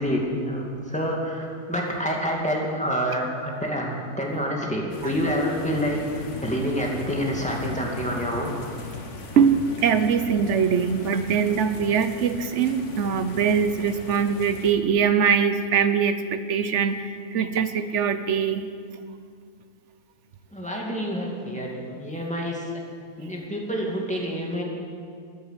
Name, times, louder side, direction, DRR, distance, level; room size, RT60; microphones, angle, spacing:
voice 1, 0.0-8.5 20.5-22.7 23.2-24.6, equal, 5° left, -2 dB, 2.3 m, -27 dB
sound 1, 4.9-14.7, left 3 dB, 55° left, 1.6 m, -38 dB
voice 2, 9.4-18.6, right 6 dB, 55° right, 10 dB, 1.1 m, -22 dB
15.0 x 10.0 x 8.2 m, 2.2 s
omnidirectional pair, 1.6 m